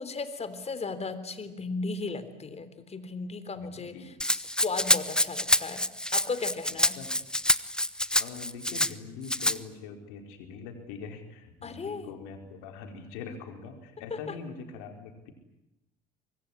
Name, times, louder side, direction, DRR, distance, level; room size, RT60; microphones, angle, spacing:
voice 1, 0.0-5.8 6.1-7.0 11.6-12.1 14.1-14.2, left 4 dB, 30° left, 12 dB, 3.5 m, -36 dB
voice 2, 3.6-4.1 7.0-7.2 8.2-15.3, left 5 dB, 75° left, 5 dB, 4.5 m, -43 dB
Rattle (instrument), 4.2-8.9 9.3-9.6, left 1 dB, 5° left, 1.2 m, -26 dB
24.5 x 22.5 x 9.9 m, 0.91 s
hypercardioid pair, 60°, 21 cm